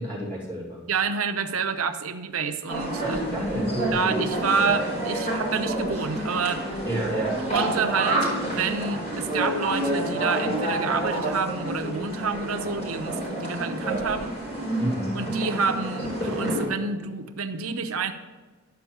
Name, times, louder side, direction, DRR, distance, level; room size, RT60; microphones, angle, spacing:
voice 1, 0.0-0.8 3.0-4.1 6.9-7.4 14.8-15.2, right 1 dB, 10° left, -7 dB, 3.9 m, -31 dB
voice 2, 0.9-3.5 3.9-6.6 7.5-14.4 15.1-18.1, right 5 dB, 85° right, 8 dB, 0.7 m, -28 dB
sound 1, 2.7-16.7, right 1 dB, 35° left, 4.1 m, -28 dB
11.5 x 5.4 x 7.2 m, 1.3 s
head